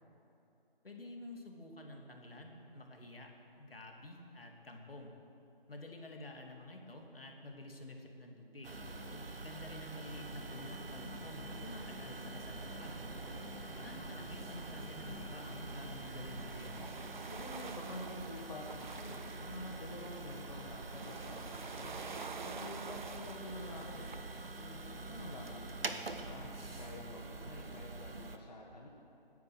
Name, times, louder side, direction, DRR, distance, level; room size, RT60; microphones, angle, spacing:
voice 1, 0.8-3.3 3.6-5.1 5.7-8.7 9.3-12.9 13.7-16.8, left 1 dB, 75° left, 1 dB, 2.8 m, -50 dB
sound 1, 8.6-28.4, right 3 dB, 75° right, 1.3 m, -46 dB
voice 2, 8.8-9.3 17.3-22.0 22.4-24.2 24.6-28.9, left 1 dB, 45° left, -1 dB, 1.7 m, -48 dB
sound 2, 10.0-16.9, left 1 dB, ahead, 0.8 m, -51 dB
sound 3, 14.5-25.5, right 5 dB, 55° right, 0.5 m, -50 dB
17.0 x 10.5 x 6.3 m, 2.9 s
figure-of-eight pair, 165°, 29 cm